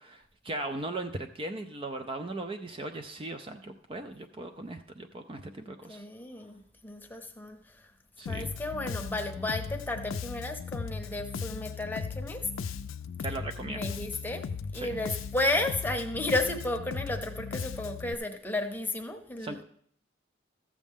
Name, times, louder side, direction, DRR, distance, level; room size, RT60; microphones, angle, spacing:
voice 1, 0.0-6.0 8.2-8.5 13.2-13.8 14.7-15.0 19.4-19.6, right 2 dB, 25° right, 7 dB, 0.4 m, -38 dB
voice 2, 5.6-7.9 8.2-12.5 13.7-14.4 14.7-19.6, left 2 dB, 10° left, 4 dB, 0.8 m, -33 dB
Bass guitar, 8.3-18.1, left 5 dB, 80° left, 0.4 m, -37 dB
13.5 x 7.3 x 3.6 m, 0.64 s
head